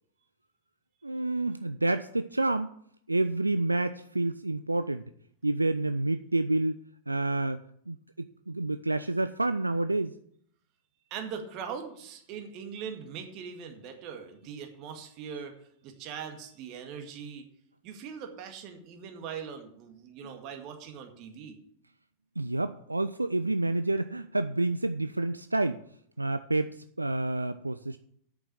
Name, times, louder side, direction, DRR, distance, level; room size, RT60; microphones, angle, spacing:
voice 1, 1.0-2.7 3.1-5.0 5.4-10.1 22.4-25.8 26.2-28.0, right 2 dB, 85° right, 11 dB, 0.4 m, -29 dB
voice 2, 11.1-15.5 15.8-17.5 17.8-21.6, right 7 dB, 40° right, 4 dB, 2.0 m, -41 dB
8.7 x 6.8 x 7.6 m, 0.66 s
figure-of-eight pair, 90°, 0 cm